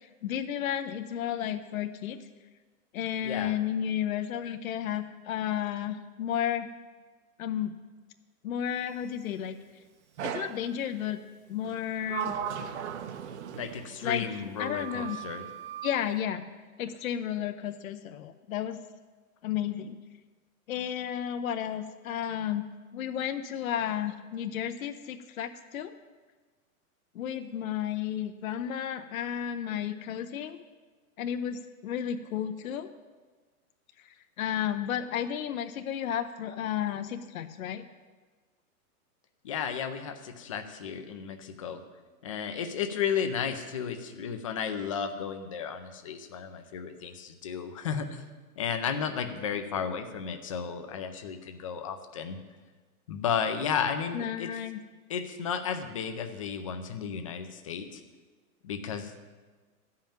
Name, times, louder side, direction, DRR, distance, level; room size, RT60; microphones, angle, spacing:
voice 1, 0.0-2.2 2.9-6.7 7.4-7.8 8.4-9.6 10.2-11.2 11.5-12.4 14.0-14.3 14.6-15.2 15.8-16.4 16.8-18.8 19.4-20.0 20.7-22.7 22.9-26.0 27.1-30.6 31.2-32.9 34.0-37.8 54.1-54.8, left 10 dB, 65° left, 8 dB, 0.8 m, -32 dB
voice 2, 3.2-3.5 13.6-15.4 39.4-41.8 42.2-48.2 48.6-52.4 53.1-54.5 55.1-58.0 58.6-59.2, left 7 dB, 25° left, 8 dB, 0.5 m, -33 dB
Sliding door, 10.2-10.6 11.6-14.1 14.6-16.0, right 9 dB, 50° right, 0.8 m, -37 dB
13.5 x 5.7 x 8.7 m, 1.4 s
hypercardioid pair, 160°, 45 cm